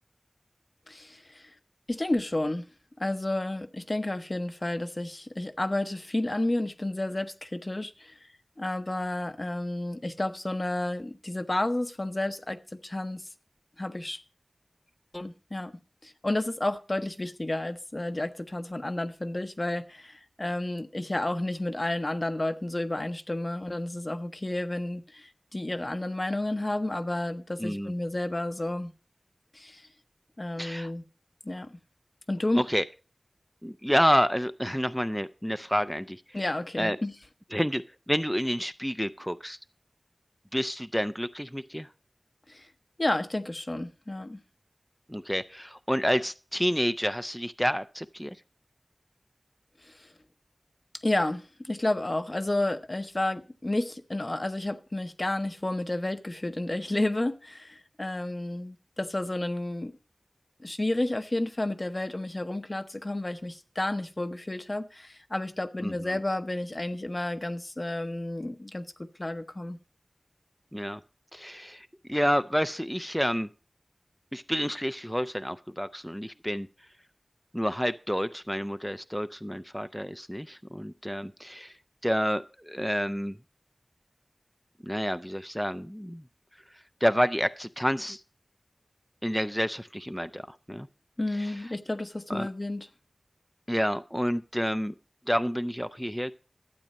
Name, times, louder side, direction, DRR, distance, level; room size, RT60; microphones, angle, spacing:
voice 1, 0.9-1.5 1.9-2.6 3.0-8.3 8.6-13.3 13.8-14.2 15.1-15.7 16.0-28.9 29.5-29.9 30.4-31.0 31.4-31.8 32.3-32.6 36.3-37.1 42.5-42.7 43.0-44.4 49.8-50.1 51.0-59.9 60.6-68.9 69.2-69.8 91.2-92.9, left 1 dB, 40° left, 0.8 m, -31 dB
voice 2, 27.6-27.9 30.6-30.9 32.5-32.8 33.6-36.2 36.8-37.0 37.5-39.6 40.5-41.9 45.1-48.4 65.8-66.2 70.7-71.0 71.3-73.5 74.3-76.7 77.5-81.7 82.0-83.3 84.8-86.2 87.0-88.2 89.2-90.9 91.4-91.5 92.3-92.5 93.7-94.9 95.3-96.3, equal, ahead, 0.5 m, -29 dB
12.0 x 8.5 x 5.2 m
wide cardioid pair, 60°, 0 cm